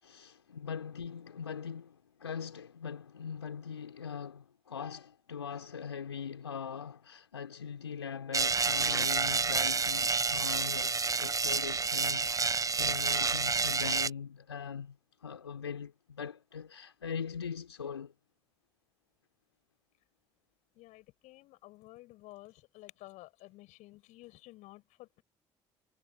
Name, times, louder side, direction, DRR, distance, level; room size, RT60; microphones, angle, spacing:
voice 1, 0.0-18.1, left 7 dB, 85° left, 3.8 m, -41 dB
sound 1, 8.3-14.1, right 4 dB, 25° right, 1.2 m, -29 dB
voice 2, 20.8-25.2, left 19 dB, 60° left, 7.3 m, -53 dB
figure-of-eight pair, 50°, 14 cm